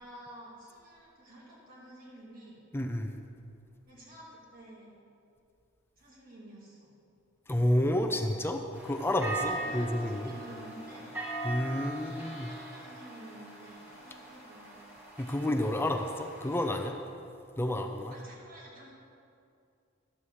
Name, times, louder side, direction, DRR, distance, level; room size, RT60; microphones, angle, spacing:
voice 1, 0.0-2.6 3.9-4.9 6.0-6.9 9.5-11.1 12.0-14.8 18.1-18.9, right 1 dB, 50° right, -5 dB, 2.4 m, -51 dB
voice 2, 2.7-3.2 7.5-10.3 11.4-12.5 15.2-17.0 17.6-18.1, left 1 dB, 10° left, 4 dB, 0.5 m, -30 dB
sound 1, 8.7-16.9, right 2 dB, 10° right, 1.8 m, -41 dB
11.5 x 4.8 x 7.1 m, 2.4 s
head